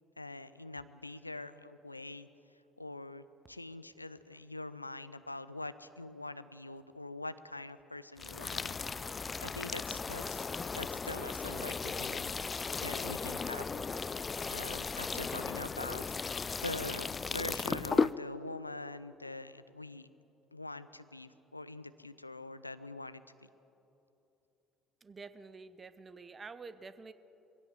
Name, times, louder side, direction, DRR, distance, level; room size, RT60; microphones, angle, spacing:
voice 1, 0.2-2.3 2.8-8.8 9.4-10.5 10.7-12.3 12.8-13.8 14.5-16.0 16.6-20.1 20.5-23.5, left 2 dB, 90° left, 14 dB, 0.5 m, -44 dB
sound 1, 8.2-18.1, left 5 dB, 30° left, 0.4 m, -36 dB
voice 2, 25.0-27.1, right 4 dB, 30° right, 14 dB, 0.9 m, -49 dB
21.5 x 16.5 x 7.8 m, 3.0 s
figure-of-eight pair, 55°, 0 cm